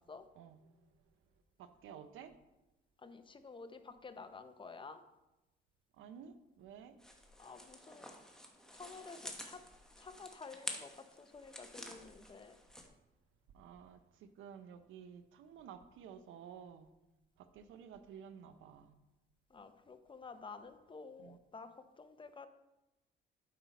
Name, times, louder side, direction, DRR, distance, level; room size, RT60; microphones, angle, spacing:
voice 1, 0.4-1.1 1.6-2.3 5.9-7.0 13.5-16.9 17.4-18.9 21.2-21.4, right 8 dB, 85° right, 10 dB, 0.7 m, -53 dB
voice 2, 3.0-5.0 7.4-8.1 8.7-9.6 10.0-10.9 11.2-12.6 19.5-22.5, left 4 dB, 25° left, 9 dB, 0.7 m, -51 dB
sound 1, 7.0-12.9, left 1 dB, 5° left, 1.1 m, -49 dB
8.6 x 5.6 x 4.1 m, 0.97 s
cardioid pair, 90°, 20 cm